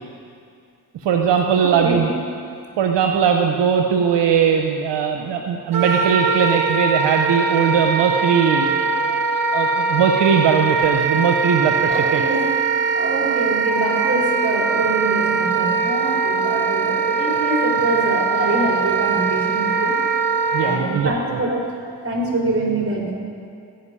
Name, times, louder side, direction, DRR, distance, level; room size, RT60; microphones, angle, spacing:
voice 1, 1.0-2.1 2.8-8.7 9.0-12.2 20.5-21.4, right 7 dB, 80° right, 3 dB, 0.9 m, -19 dB
voice 2, 1.6-2.1 11.9-12.5 12.9-20.0 20.6-21.7 22.0-23.1, right 2 dB, 30° right, -2 dB, 4.0 m, -24 dB
Wind instrument woodwind instrument, 5.7-20.8, right 4 dB, 50° right, 2.1 m, -21 dB
16.0 x 6.0 x 9.8 m, 2.4 s
supercardioid pair, 45°, 42 cm